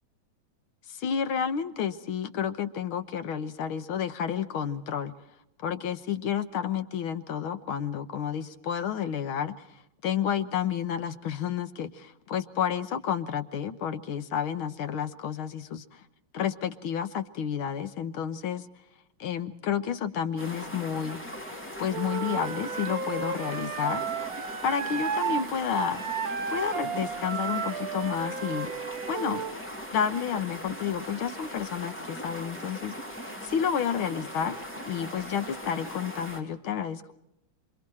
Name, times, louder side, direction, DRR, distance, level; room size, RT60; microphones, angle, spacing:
voice 1, 0.9-5.1 5.6-9.7 10.0-16.0 16.3-18.7 19.2-21.2 21.8-24.0 24.6-26.0 26.5-28.7 29.1-29.5 29.9-32.9 33.4-34.6 34.9-37.1, left 8 dB, 70° left, 11 dB, 1.9 m, -30 dB
sound 1, 20.4-36.4, equal, 5° left, 3.4 m, -40 dB
Wind instrument woodwind instrument, 21.9-25.5 25.7-29.6, right 6 dB, 50° right, 1.3 m, -33 dB
27.0 x 26.5 x 4.2 m, 0.82 s
omnidirectional pair, 2.4 m